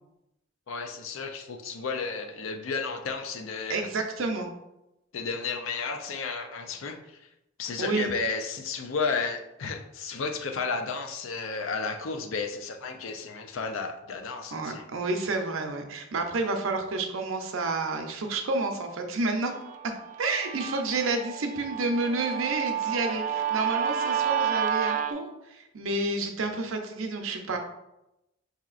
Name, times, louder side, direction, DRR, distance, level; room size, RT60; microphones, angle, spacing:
voice 1, 0.7-3.9 5.1-7.2 7.6-14.8, left 4 dB, 75° left, 6 dB, 0.5 m, -33 dB
voice 2, 3.7-4.5 7.8-8.1 14.5-19.5 20.2-27.6, right 3 dB, 80° right, 4 dB, 0.6 m, -30 dB
Guitar, 19.6-25.1, right 9 dB, 40° right, 0.3 m, -30 dB
4.7 x 2.8 x 2.4 m, 0.89 s
head